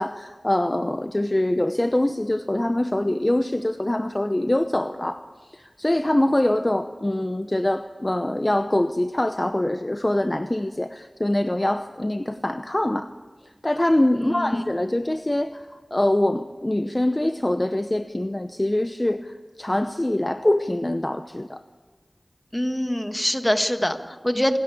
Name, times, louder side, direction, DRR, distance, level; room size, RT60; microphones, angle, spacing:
voice 1, 0.0-5.2 5.5-13.1 13.6-15.6 15.9-21.6, left 1 dB, 30° left, 9 dB, 0.8 m, -24 dB
voice 2, 14.1-14.6 22.5-24.6, equal, 10° left, 7 dB, 1.7 m, -24 dB
27.5 x 13.0 x 8.6 m, 1.3 s
wide cardioid pair, 50°, 0 cm